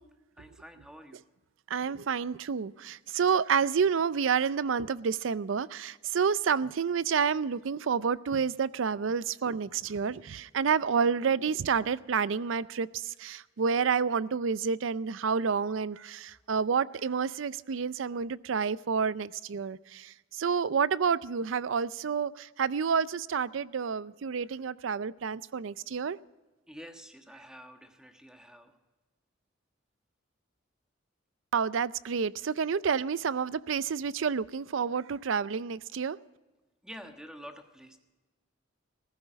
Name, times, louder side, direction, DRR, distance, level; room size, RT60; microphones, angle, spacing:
voice 1, 0.4-1.2 26.7-28.8 36.8-38.0, equal, 5° right, 1.3 m, -48 dB
voice 2, 1.7-26.2 31.5-36.2, right 6 dB, 80° right, 0.5 m, -29 dB
15.5 x 14.5 x 5.1 m
head